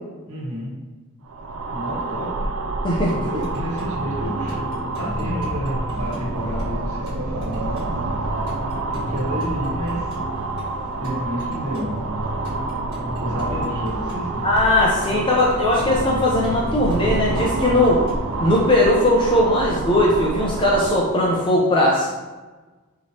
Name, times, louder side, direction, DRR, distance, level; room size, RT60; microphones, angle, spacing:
voice 1, 0.3-0.7 1.7-2.5 3.2-7.9 8.9-10.1 11.0-12.0 13.2-14.4, equal, 90° right, -5 dB, 1.4 m, -30 dB
sound 1, 1.3-21.1, right 2 dB, 75° right, 0.4 m, -28 dB
voice 2, 2.8-3.1 14.4-18.0 18.4-22.1, left 1 dB, 25° left, -3 dB, 0.5 m, -19 dB
sound 2, 3.1-21.1, equal, 50° right, 1.4 m, -33 dB
4.7 x 3.0 x 2.8 m, 1.2 s
head